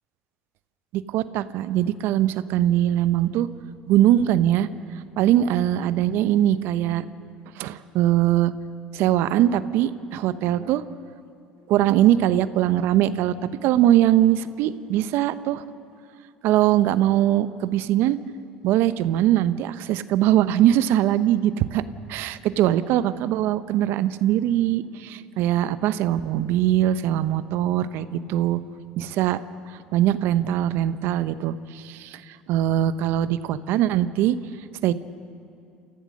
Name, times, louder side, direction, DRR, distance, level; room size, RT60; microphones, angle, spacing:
voice 1, 0.9-3.5 3.9-4.7 5.2-7.0 7.6-8.5 8.9-10.8 11.7-15.6 16.4-18.2 18.6-21.8 22.1-28.6 29.0-29.4 29.9-34.4 34.8-34.9, right 12 dB, 65° right, 14 dB, 0.8 m, -21 dB
28.5 x 15.0 x 6.4 m, 2.6 s
hypercardioid pair, 80°, 4 cm